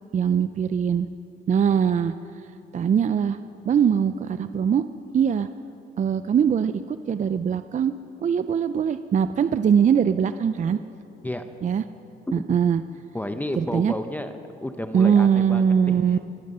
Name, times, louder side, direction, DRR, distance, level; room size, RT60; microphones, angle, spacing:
voice 1, 0.1-1.1 1.5-2.1 2.7-3.4 3.7-4.8 5.1-5.5 6.0-7.9 8.2-10.8 11.6-11.8 12.3-12.8 13.6-13.9 14.9-16.2, right 7 dB, 40° right, 12 dB, 0.4 m, -21 dB
voice 2, 12.3-12.6 13.1-14.3 14.6-16.2, left 1 dB, 10° left, 8 dB, 0.8 m, -31 dB
24.0 x 10.0 x 5.5 m, 2.7 s
cardioid pair, 90°, 20 cm